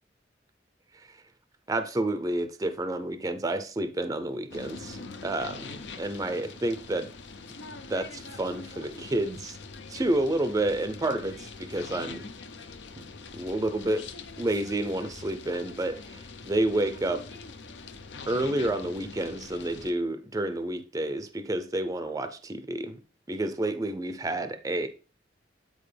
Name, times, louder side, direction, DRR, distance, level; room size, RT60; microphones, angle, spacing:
voice 1, 1.7-7.1 7.9-9.6 9.9-12.3 13.3-14.0 14.4-17.2 18.3-23.0 23.3-24.9, right 1 dB, 20° right, 0.5 m, -30 dB
sound 1, 4.5-19.9, left 4 dB, 70° left, 0.7 m, -43 dB
8.8 x 4.5 x 3.3 m
head